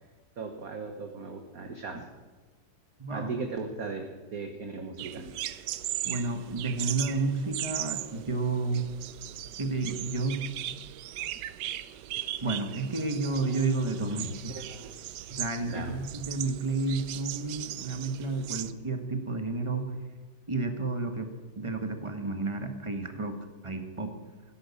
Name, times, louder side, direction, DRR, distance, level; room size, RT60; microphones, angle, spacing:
voice 1, 0.4-2.1 3.1-5.3 11.2-11.3 14.5-14.9 15.7-16.0, right 4 dB, 45° right, 5 dB, 1.5 m, -38 dB
voice 2, 3.0-3.3 6.0-8.9 9.6-10.4 12.4-14.5 15.3-19.9 20.5-21.3 21.6-23.4 23.6-24.1, right 3 dB, 15° right, 6 dB, 1.3 m, -31 dB
sound 1, 5.0-18.7, right 13 dB, 70° right, 1.0 m, -38 dB
17.5 x 10.5 x 7.1 m, 1.3 s
omnidirectional pair, 2.4 m